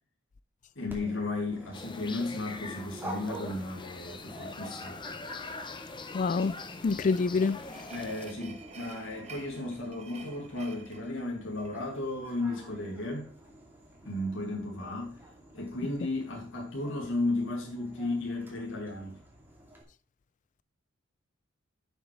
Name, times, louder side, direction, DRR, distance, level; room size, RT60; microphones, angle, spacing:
voice 1, 0.8-5.0 7.9-13.3 14.0-15.2 15.5-19.2, left 2 dB, 70° left, 2.5 m, -34 dB
Dog, 0.9-19.8, right 1 dB, 10° right, 2.8 m, -49 dB
sound 1, 1.7-8.3, left 3 dB, 25° left, 0.8 m, -43 dB
voice 2, 6.1-6.5 6.8-7.6, left 4 dB, 40° left, 0.3 m, -26 dB
sound 2, 6.5-11.9, right 4 dB, 35° right, 1.3 m, -50 dB
11.0 x 7.2 x 3.3 m
head